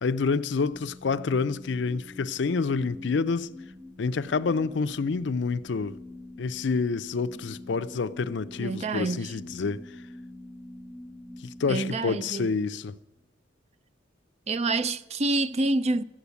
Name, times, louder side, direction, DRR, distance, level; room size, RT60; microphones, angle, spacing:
voice 1, 0.0-3.5 4.0-6.0 6.4-10.0 11.4-13.0, left 4 dB, 65° left, 0.5 m, -28 dB
sound 1, 0.7-12.9, left 1 dB, 10° left, 0.8 m, -45 dB
voice 2, 8.6-9.3 11.7-12.5 14.5-16.0, right 2 dB, 35° right, 0.4 m, -27 dB
14.0 x 8.5 x 8.1 m
head